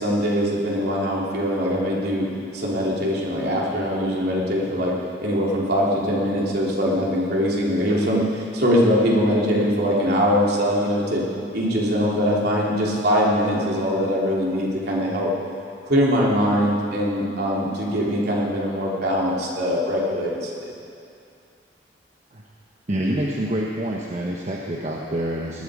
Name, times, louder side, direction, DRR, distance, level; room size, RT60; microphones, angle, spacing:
voice 1, 0.0-2.3 2.5-4.9 5.2-11.2 11.5-15.3 15.9-20.5, equal, 55° right, -4 dB, 3.3 m, -22 dB
voice 2, 22.9-25.6, right 1 dB, 40° right, -2 dB, 1.1 m, -26 dB
19.5 x 12.5 x 5.0 m, 2.5 s
head